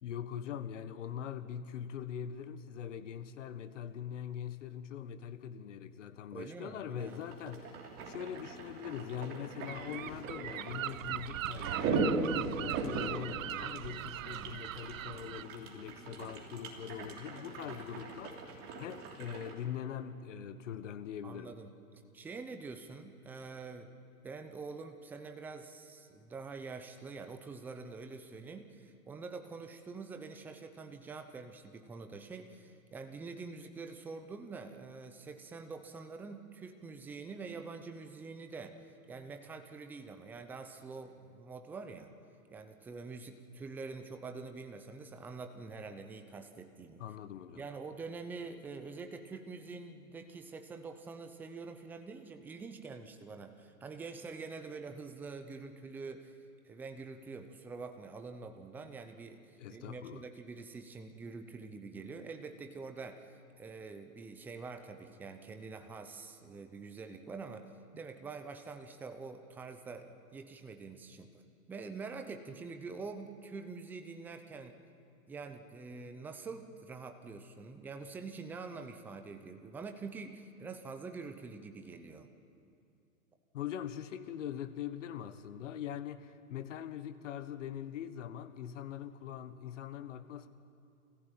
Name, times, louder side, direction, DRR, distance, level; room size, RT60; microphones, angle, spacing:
voice 1, 0.0-18.4 18.8-21.5 47.0-47.6 59.6-60.2 83.5-90.5, left 9 dB, 50° left, 12 dB, 1.4 m, -42 dB
voice 2, 6.3-7.3 14.2-14.6 21.2-21.7 22.1-23.9 24.2-42.1 42.5-47.0 47.5-56.4 56.6-71.4 71.7-74.8 75.3-82.3, right 4 dB, 5° right, 7 dB, 0.6 m, -46 dB
sound 1, 7.1-19.5, right 4 dB, 30° right, 3.1 m, -39 dB
Gull seagull, 9.7-15.4, right 13 dB, 60° right, 0.6 m, -40 dB
26.5 x 15.0 x 9.0 m, 2.5 s
hypercardioid pair, 135°, 46 cm